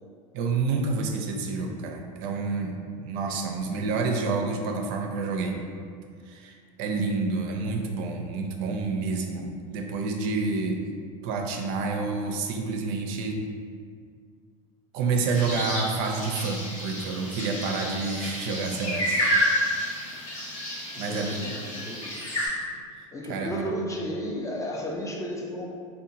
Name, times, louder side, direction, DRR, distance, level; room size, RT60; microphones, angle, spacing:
voice 1, 0.3-5.6 6.3-10.8 11.2-13.4 14.9-19.3 21.0-21.4 22.9-23.6, right 4 dB, 60° right, 2 dB, 0.4 m, -29 dB
sound 1, 15.3-22.5, equal, 80° left, 0.9 m, -30 dB
voice 2, 20.9-22.1 23.1-25.7, equal, 20° left, 0 dB, 0.3 m, -33 dB
2.9 x 2.2 x 2.6 m, 2.1 s
hypercardioid pair, 90°, 17 cm